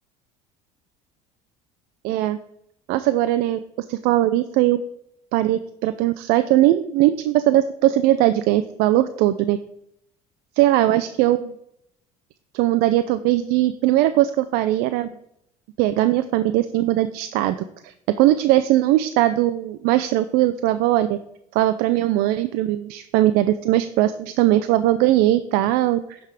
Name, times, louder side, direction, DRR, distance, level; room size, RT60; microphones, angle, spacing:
voice 1, 2.0-2.4 2.9-3.6 3.9-4.8 5.3-9.6 10.6-11.5 12.5-15.1 15.8-17.6 17.8-21.2 21.5-26.2, right 14 dB, 70° right, 11 dB, 0.4 m, -20 dB
10.5 x 3.6 x 4.8 m, 0.76 s
supercardioid pair, 80°, 17 cm